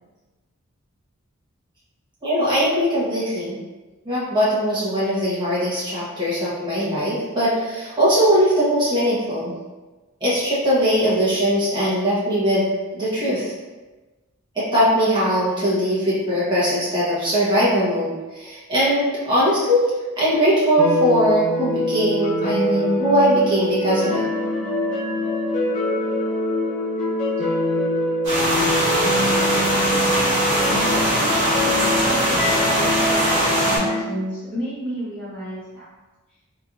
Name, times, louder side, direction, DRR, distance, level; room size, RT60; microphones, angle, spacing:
voice 1, 2.2-3.6 4.0-9.5 10.2-12.7 12.9-13.5 14.5-19.9 20.2-24.2, equal, 20° right, -9 dB, 1.2 m, -20 dB
sound 1, 20.8-34.0, left 1 dB, 35° left, 0.5 m, -24 dB
sound 2, 28.2-33.8, equal, 55° right, 1.3 m, -21 dB
voice 2, 31.1-31.7 32.0-35.9, equal, 5° left, -13 dB, 1.3 m, -31 dB
3.3 x 3.0 x 2.5 m, 1.2 s
head